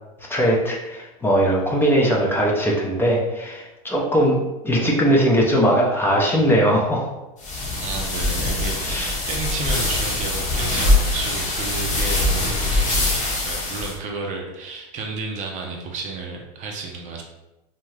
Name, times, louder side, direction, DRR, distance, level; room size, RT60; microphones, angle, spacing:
voice 1, 0.3-4.4 4.6-7.1 8.8-9.1, equal, 10° left, -2 dB, 0.6 m, -20 dB
sound 1, 7.4-13.9, left 2 dB, 40° left, 0.9 m, -23 dB
voice 2, 7.8-17.2, right 3 dB, 40° right, 1 dB, 0.5 m, -31 dB
2.7 x 2.2 x 3.2 m, 1.0 s
hypercardioid pair, 110°, 19 cm